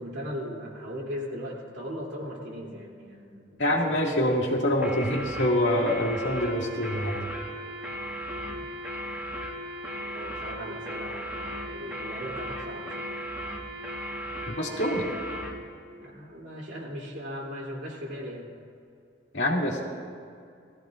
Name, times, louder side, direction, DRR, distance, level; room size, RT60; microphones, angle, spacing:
voice 1, 0.0-3.8 8.5-8.6 10.1-13.1 16.0-18.5, equal, 70° right, -3 dB, 3.0 m, -38 dB
voice 2, 3.6-7.2 14.5-15.1 19.3-19.8, left 1 dB, 70° left, -2 dB, 2.1 m, -25 dB
sound 1, 4.8-15.6, equal, 10° right, 1.6 m, -36 dB
20.0 x 14.5 x 2.5 m, 2.3 s
head